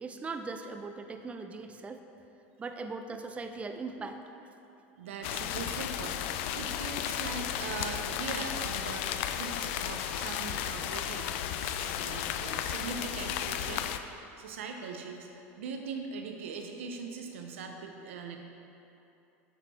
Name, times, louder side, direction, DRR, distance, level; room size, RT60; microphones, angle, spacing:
voice 1, 0.0-2.0 2.6-4.2, right 4 dB, 20° right, 6 dB, 0.4 m, -39 dB
voice 2, 5.0-6.2 6.5-11.3 11.6-18.4, right 5 dB, 90° right, 3 dB, 0.6 m, -41 dB
sound 1, 5.2-14.0, left 10 dB, 75° left, 0.4 m, -34 dB
8.5 x 5.3 x 4.2 m, 2.9 s
supercardioid pair, 105°, 7 cm